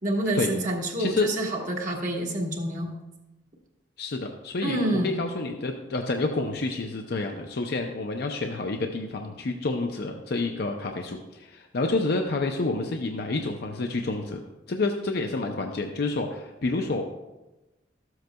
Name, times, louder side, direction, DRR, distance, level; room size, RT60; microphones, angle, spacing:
voice 1, 0.0-2.9 4.6-5.2, right 1 dB, 45° right, 0 dB, 1.3 m, -27 dB
voice 2, 4.0-14.4 14.7-17.0, left 3 dB, 55° left, 3 dB, 0.6 m, -29 dB
13.0 x 7.8 x 2.3 m, 1.0 s
head